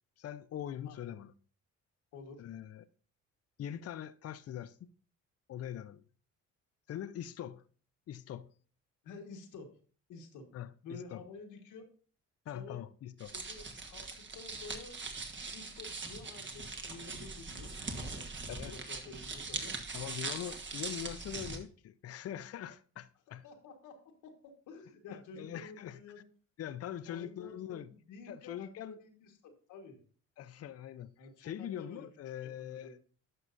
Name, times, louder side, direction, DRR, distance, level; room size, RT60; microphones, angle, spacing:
voice 1, 0.2-1.3 2.4-2.9 3.6-4.9 5.5-6.0 6.9-7.6 8.1-8.5 10.5-11.2 12.5-13.3 18.5-18.7 19.9-23.4 25.1-26.0 26.6-27.9 28.3-29.0 30.4-33.0, left 10 dB, 55° left, 0.6 m, -43 dB
voice 2, 2.1-2.4 9.0-9.7 10.1-10.5 10.8-11.9 12.5-12.8 13.3-15.0 15.5-19.8 23.3-26.2 27.0-30.0 31.2-32.1 32.4-32.9, left 4 dB, 85° left, 1.5 m, -51 dB
sound 1, 13.2-21.6, right 3 dB, 40° right, 1.4 m, -41 dB
11.0 x 5.7 x 2.6 m
cardioid pair, 90°, 30 cm